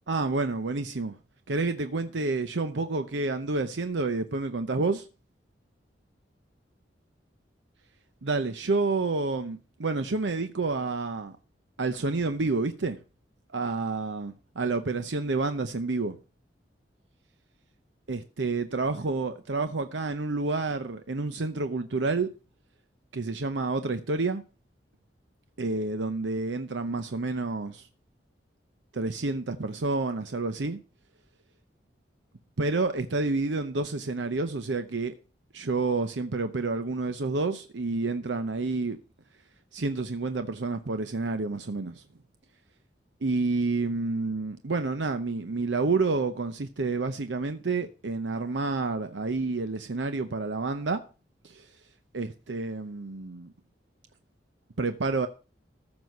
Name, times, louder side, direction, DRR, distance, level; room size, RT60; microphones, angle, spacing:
voice 1, 0.1-1.2 1.5-5.0 8.2-11.3 11.8-13.0 13.5-16.2 18.1-22.3 23.1-24.4 25.6-27.9 28.9-30.8 32.6-35.1 35.5-39.0 39.7-42.0 43.2-51.0 51.4-51.7 52.1-53.5 54.8-55.3, right 3 dB, 80° right, 0.8 m, -29 dB
14.5 x 6.2 x 5.4 m
head